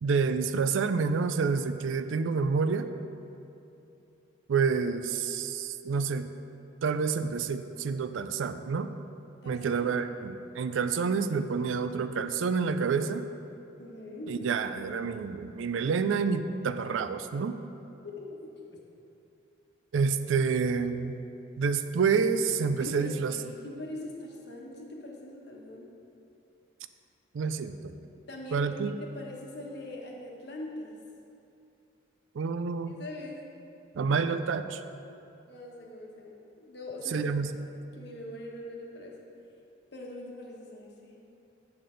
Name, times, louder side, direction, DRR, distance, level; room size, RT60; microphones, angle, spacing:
voice 1, 0.0-2.9 4.5-6.3 6.8-8.9 9.5-13.2 14.3-17.6 19.9-21.2 21.6-23.3 27.3-28.0 28.5-29.0 32.4-33.0 34.0-34.8 37.1-37.5, right 5 dB, 75° right, 10 dB, 0.4 m, -28 dB
voice 2, 9.4-9.8 13.8-14.3 18.0-18.8 22.8-25.9 28.3-30.9 32.9-33.4 35.4-37.3 37.9-39.1 39.9-41.2, left 1 dB, 55° left, -1 dB, 1.1 m, -42 dB
8.6 x 6.8 x 3.8 m, 2.8 s
head